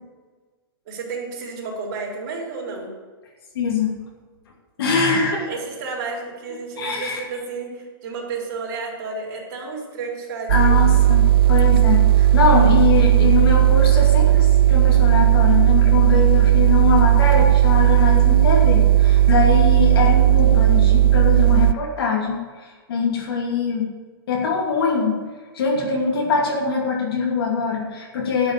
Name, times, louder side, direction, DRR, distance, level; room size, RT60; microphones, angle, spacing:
voice 1, 0.9-2.9 5.3-10.8, right 4 dB, 50° right, -3 dB, 4.2 m, -31 dB
voice 2, 3.5-3.9 4.8-5.5 6.8-7.2 10.5-11.2 11.5-23.9 24.3-25.2 25.5-28.5, left 5 dB, 75° left, -1 dB, 2.6 m, -22 dB
sound 1, 10.5-21.7, right 13 dB, 70° right, 0.4 m, -15 dB
12.0 x 6.3 x 8.4 m, 1.4 s
supercardioid pair, 165°, 13 cm